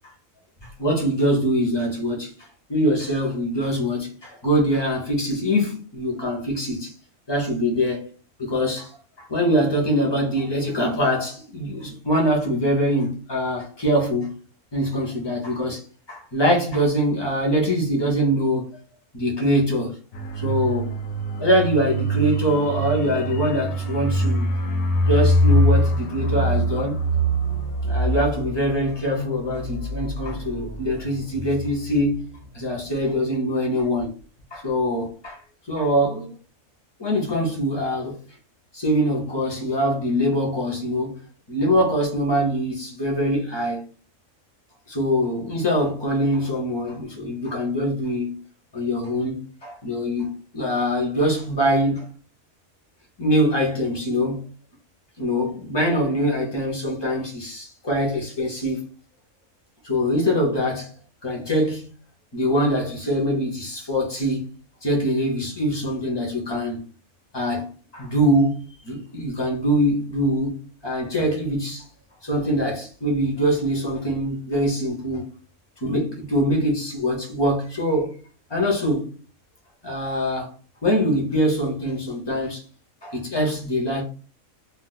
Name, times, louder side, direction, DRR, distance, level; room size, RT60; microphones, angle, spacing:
voice 1, 0.6-2.3 2.7-6.9 7.3-8.0 8.4-8.9 9.2-14.3 14.7-15.8 16.1-18.6 19.1-20.0 20.4-21.0 21.4-24.5 25.0-27.0 27.8-32.2 32.5-34.1 34.5-35.4 35.6-36.3 37.0-38.2 38.7-41.2 41.5-43.8 44.9-48.4 48.7-52.1 53.2-54.4 55.2-58.8 59.8-60.9 61.2-61.9 62.3-64.4 64.8-66.8 67.3-71.9 72.2-75.3 75.8-78.2 78.5-79.1 79.8-80.5 80.8-82.6 83.0-84.0, equal, 25° left, 0.6 m, -23 dB
sound 1, 20.1-32.5 32.8-33.0, equal, 60° left, 0.8 m, -24 dB
2.4 x 2.2 x 3.9 m
omnidirectional pair, 1.5 m